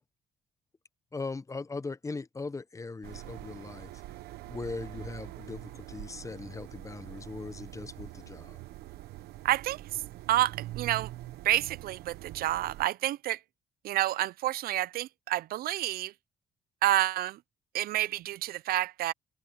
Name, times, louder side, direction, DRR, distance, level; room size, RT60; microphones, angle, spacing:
voice 1, 1.1-3.9 4.5-8.6, left 3 dB, 20° left, 0.8 m, -39 dB
sound 1, 3.0-12.9, right 16 dB, 90° right, 1.1 m, -44 dB
voice 2, 9.4-10.0 10.3-11.1 11.4-13.4 13.8-16.1 16.8-17.4 17.7-19.1, right 15 dB, 70° right, 0.5 m, -29 dB
cardioid pair, 100°, 16 cm